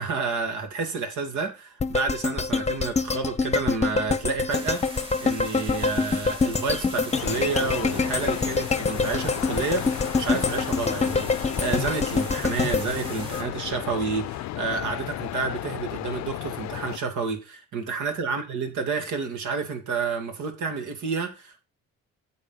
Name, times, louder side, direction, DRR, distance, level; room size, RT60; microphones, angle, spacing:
voice 1, 0.0-21.6, right 4 dB, 75° right, 2.7 m, -30 dB
sound 1, 1.8-14.0 14.4-14.5, left 4 dB, 20° left, 0.9 m, -26 dB
sound 2, 4.5-13.4, right 1 dB, 15° right, 2.9 m, -41 dB
sound 3, 7.1-17.0, left 15 dB, 65° left, 0.5 m, -34 dB
9.3 x 7.2 x 4.1 m
cardioid pair, 90°, 30 cm